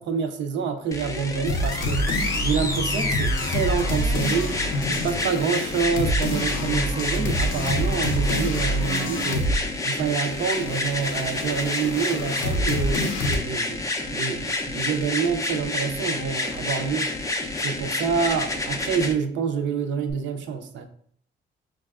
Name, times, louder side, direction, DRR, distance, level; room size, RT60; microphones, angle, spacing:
voice 1, 0.0-4.6 4.9-9.5 9.8-13.8 14.1-17.1 17.6-20.8, right 6 dB, 65° right, 7 dB, 0.5 m, -27 dB
sound 1, 0.9-19.1 20.1-20.2, left 2 dB, 15° left, 0.4 m, -29 dB
sound 2, 1.5-9.7 9.9-13.4, equal, 85° left, 0.6 m, -27 dB
4.8 x 2.3 x 2.3 m, 0.62 s
cardioid pair, 90°, 20 cm